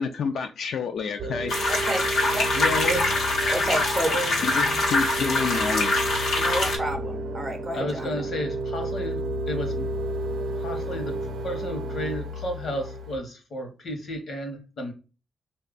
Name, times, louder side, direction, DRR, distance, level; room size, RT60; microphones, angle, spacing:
voice 1, 0.0-1.5 4.4-6.0, left 6 dB, 70° left, 0.3 m, -29 dB
sound 1, 1.2-13.2, right 2 dB, 75° right, 0.6 m, -32 dB
sound 2, 1.5-6.8, left 2 dB, 85° left, 0.9 m, -24 dB
voice 2, 1.7-2.5 3.5-4.3 6.4-8.3, right 1 dB, 20° right, 0.4 m, -30 dB
voice 3, 2.5-3.3 4.0-4.8 7.7-9.2 9.5-9.9 10.6-11.1 11.4-14.9, equal, 50° left, 0.9 m, -32 dB
3.2 x 2.3 x 3.7 m
wide cardioid pair, 165°, 0 cm